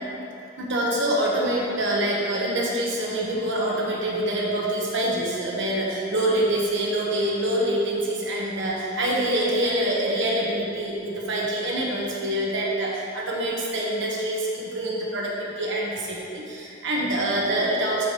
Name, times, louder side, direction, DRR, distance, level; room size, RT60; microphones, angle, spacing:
voice 1, 0.6-18.1, right 1 dB, 65° right, -3 dB, 1.2 m, -25 dB
13.5 x 5.0 x 3.1 m, 2.6 s
head